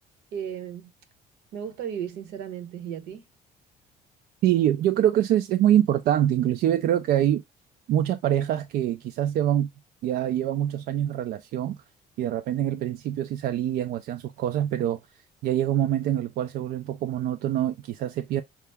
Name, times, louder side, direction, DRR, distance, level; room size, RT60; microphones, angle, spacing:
voice 1, 0.3-0.9 1.5-3.2, right 8 dB, 85° right, 1.0 m, -35 dB
voice 2, 4.4-7.4 7.9-9.7 10.0-11.8 12.2-15.0 15.4-18.4, right 11 dB, 65° right, 0.4 m, -24 dB
5.7 x 2.0 x 3.4 m
cardioid pair, 110°, 17 cm